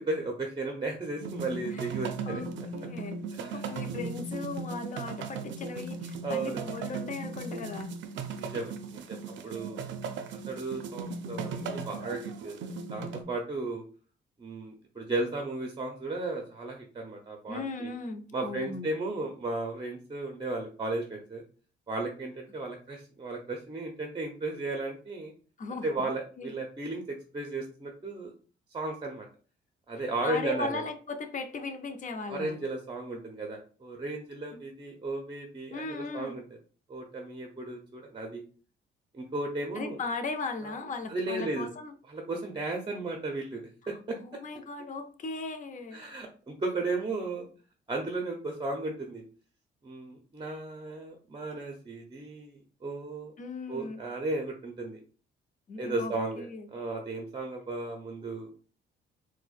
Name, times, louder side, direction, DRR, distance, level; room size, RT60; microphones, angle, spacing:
voice 1, 0.0-2.4 3.4-3.6 6.2-6.6 8.3-9.8 10.5-13.8 14.4-17.9 18.3-21.4 21.9-25.3 25.8-28.3 28.7-29.3 29.9-30.8 32.3-36.4 36.9-38.4 39.1-40.0 40.6-40.7 41.1-41.7 42.1-43.6 43.9-44.2 45.9-47.5 47.9-49.2 49.8-53.3 53.7-55.0 55.8-58.5, right 2 dB, 25° right, 2 dB, 0.6 m, -35 dB
sound 1, 1.2-13.2, right 4 dB, 70° right, 0.5 m, -37 dB
voice 2, 2.3-7.9 17.5-18.9 25.6-26.1 26.4-26.5 30.2-32.6 34.5-34.6 35.7-36.4 39.7-41.9 43.8-46.0 53.4-54.0 55.7-56.7, left 3 dB, 40° left, 7 dB, 0.6 m, -38 dB
4.2 x 2.1 x 2.4 m, 0.39 s
cardioid pair, 90°, 20 cm